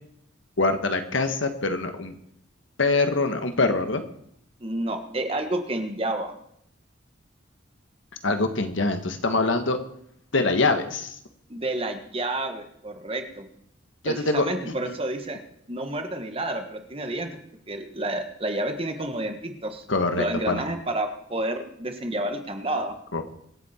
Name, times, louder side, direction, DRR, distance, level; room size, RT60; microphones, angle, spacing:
voice 1, 0.6-2.2 2.8-4.0 8.2-9.8 10.3-11.2 14.0-14.7 19.9-20.6 23.1-23.2, left 3 dB, 75° left, 7 dB, 1.5 m, -24 dB
voice 2, 4.6-6.3 11.5-13.5 14.0-15.4 15.7-17.3 17.7-19.8 20.2-22.9, right 1 dB, 30° right, 6 dB, 1.5 m, -30 dB
24.5 x 8.6 x 4.4 m, 0.71 s
head